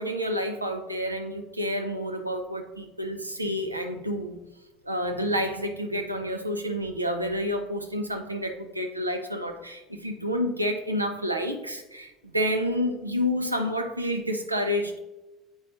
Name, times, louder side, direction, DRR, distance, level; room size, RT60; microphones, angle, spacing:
voice 1, 0.0-4.4 4.8-15.0, equal, 85° right, 5 dB, 0.5 m, -29 dB
7.9 x 5.2 x 2.7 m, 1.0 s
figure-of-eight pair, 60°, 0 cm